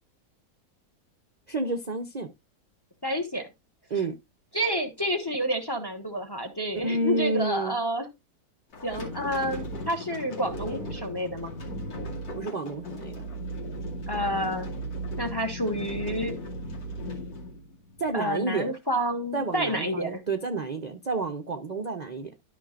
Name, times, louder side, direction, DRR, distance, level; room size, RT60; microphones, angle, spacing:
voice 1, 1.5-2.3 3.9-4.1 6.8-7.7 12.3-13.2 18.0-18.7 19.3-22.3, right 3 dB, 50° right, 0.5 m, -30 dB
voice 2, 3.0-3.5 4.5-8.1 8.8-11.5 14.1-14.7 15.2-16.4 18.1-20.2, equal, 20° left, 0.8 m, -29 dB
sound 1, 8.7-18.2, equal, 80° left, 3.0 m, -36 dB
12.5 x 5.8 x 2.5 m
omnidirectional pair, 1.9 m